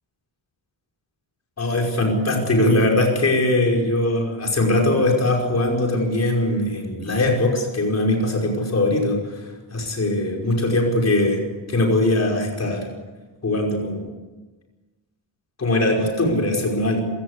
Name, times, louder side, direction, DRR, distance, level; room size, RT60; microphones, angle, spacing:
voice 1, 1.6-11.4 11.7-12.9 13.4-14.1 15.6-17.0, left 1 dB, 35° left, 1 dB, 5.4 m, -21 dB
26.5 x 17.0 x 8.3 m, 1.2 s
wide cardioid pair, 175°, 46 cm